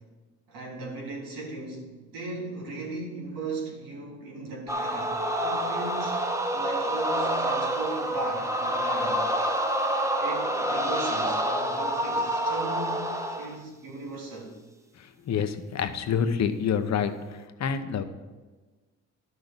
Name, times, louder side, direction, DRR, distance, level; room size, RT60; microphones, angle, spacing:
voice 1, 0.5-6.2 6.5-9.2 10.2-13.1 13.4-14.6, right 2 dB, 85° right, -3 dB, 3.4 m, -37 dB
sound 1, 4.7-13.6, right 1 dB, 10° right, 1.0 m, -27 dB
voice 2, 15.3-17.1 17.6-18.0, left 7 dB, 55° left, 10 dB, 0.9 m, -27 dB
12.0 x 6.3 x 5.3 m, 1.3 s
cardioid pair, 85°, 33 cm